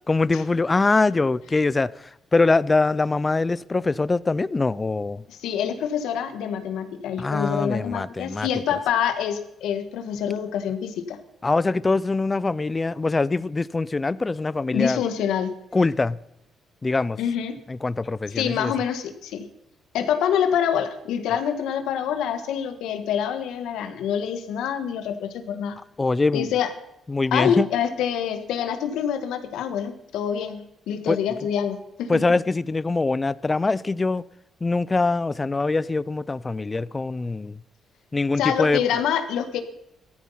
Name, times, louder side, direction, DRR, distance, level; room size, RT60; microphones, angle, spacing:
voice 1, 0.1-1.9 2.3-5.2 7.2-8.5 11.4-15.0 15.7-16.2 16.8-17.2 17.7-18.7 26.0-26.5 27.1-27.7 31.1-31.2 32.1-34.2 34.6-37.6 38.1-38.8, left 3 dB, 25° left, 0.5 m, -23 dB
voice 2, 5.3-11.2 14.7-15.5 17.2-17.5 18.3-19.5 19.9-25.8 26.3-26.7 27.3-32.2 38.4-39.6, left 8 dB, 85° left, 1.6 m, -26 dB
15.5 x 13.5 x 5.7 m
cardioid pair, 90°, 0 cm